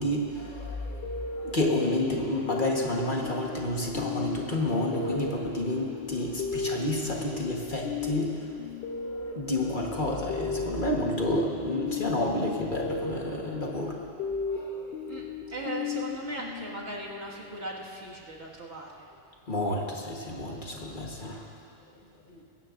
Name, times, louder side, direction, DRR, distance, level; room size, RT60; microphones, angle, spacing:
voice 1, 0.0-15.1 19.5-21.5 21.9-22.0, left 1 dB, 45° left, -1 dB, 1.5 m, -30 dB
sound 1, 1.0-17.4, left 5 dB, 60° left, 0.8 m, -36 dB
voice 2, 15.1-19.1 22.3-22.4, right 2 dB, 65° right, -4 dB, 2.2 m, -38 dB
20.5 x 16.5 x 2.6 m, 2.4 s
omnidirectional pair, 1.2 m